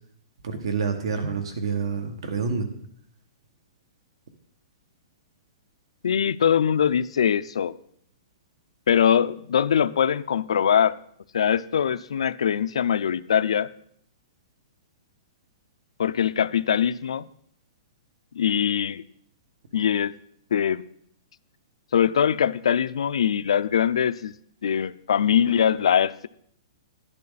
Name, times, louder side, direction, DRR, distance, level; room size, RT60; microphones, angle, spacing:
voice 1, 0.4-2.7, right 5 dB, 65° right, 7 dB, 1.9 m, -27 dB
voice 2, 6.0-7.7 8.9-11.0 11.3-13.7 16.0-17.3 18.3-19.0 19.7-20.1 20.5-20.8 21.9-24.3 24.6-26.3, left 8 dB, 90° left, 14 dB, 0.5 m, -22 dB
11.5 x 11.0 x 4.1 m, 0.66 s
hypercardioid pair, 175°, 3 cm